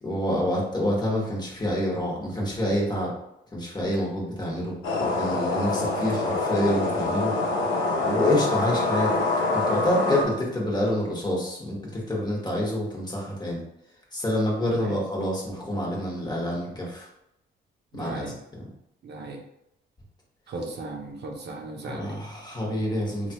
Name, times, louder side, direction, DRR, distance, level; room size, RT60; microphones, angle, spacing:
voice 1, 0.0-3.1 3.5-7.3 8.0-9.1 9.5-13.6 14.1-17.1 17.9-18.2 18.6-18.7 21.8-23.3, left 1 dB, 20° left, -3 dB, 1.1 m, -27 dB
sound 1, 4.8-10.2, left 2 dB, 80° left, 0.8 m, -25 dB
voice 2, 17.9-18.3 19.0-19.4 20.5-22.1, right 2 dB, 60° right, 1 dB, 0.7 m, -36 dB
3.2 x 2.3 x 2.9 m, 0.84 s
cardioid pair, 90°, 20 cm